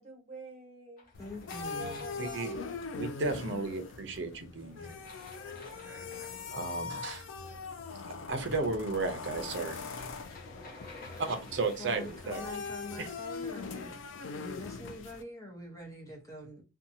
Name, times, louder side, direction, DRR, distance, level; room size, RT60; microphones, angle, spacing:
voice 1, 0.0-1.1 1.7-2.7, right 1 dB, 35° right, 1.1 m, -47 dB
sound 1, 1.0-3.0 4.9-6.8 9.8-12.5, left 3 dB, 45° left, 0.7 m, -51 dB
sound 2, 1.1-15.2, left 4 dB, 70° left, 0.3 m, -41 dB
voice 2, 1.2-2.1 11.8-16.6, left 1 dB, 15° left, 0.8 m, -45 dB
voice 3, 2.2-2.6 3.0-5.0 5.9-7.2 8.3-10.1 11.3-12.5 13.0-13.1, right 3 dB, 60° right, 0.6 m, -35 dB
2.7 x 2.3 x 2.6 m
head